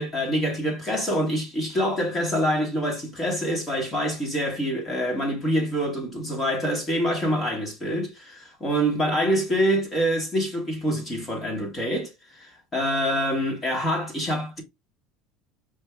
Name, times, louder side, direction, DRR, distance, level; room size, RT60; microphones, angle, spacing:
voice 1, 0.0-14.6, equal, 20° left, 1.5 m, -26 dB
5.2 x 2.7 x 3.4 m
cardioid pair, 160°, 0 cm